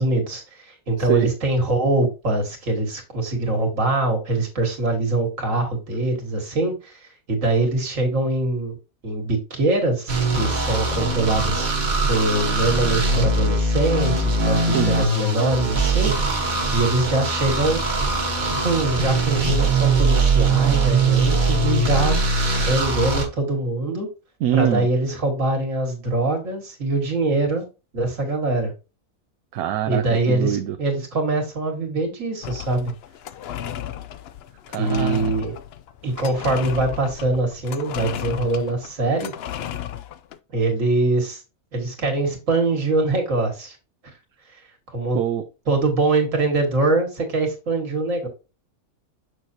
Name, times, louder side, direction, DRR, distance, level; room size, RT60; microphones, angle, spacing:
voice 1, 0.0-7.0 7.3-8.8 9.0-11.7 12.1-17.8 18.4-22.2 22.5-24.1 24.5-27.6 27.9-28.7 29.9-32.9 34.8-35.5 36.0-39.3 40.5-41.4 41.7-43.8 44.9-45.2 45.7-48.3, right 2 dB, 60° right, 3 dB, 2.2 m, -23 dB
voice 2, 1.0-1.3 14.6-14.9 24.4-24.9 29.5-30.8 34.7-35.3 45.1-45.4, right 11 dB, 80° right, 6 dB, 1.1 m, -24 dB
sound 1, 10.1-23.3, right 3 dB, 35° right, 1.3 m, -21 dB
sound 2, 32.4-40.4, left 11 dB, 70° left, 0.6 m, -34 dB
6.4 x 6.3 x 2.8 m, 0.29 s
omnidirectional pair, 1.5 m